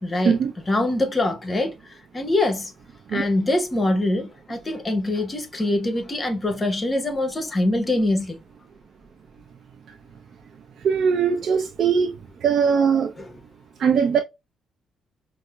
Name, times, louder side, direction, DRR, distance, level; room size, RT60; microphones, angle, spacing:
voice 1, 0.0-0.4 0.7-2.7 3.1-8.4, left 1 dB, 25° left, 0.9 m, -24 dB
voice 2, 10.8-12.1 12.4-13.1 13.8-14.2, right 6 dB, 60° right, 0.5 m, -20 dB
5.2 x 2.1 x 2.3 m
cardioid pair, 90°, 0 cm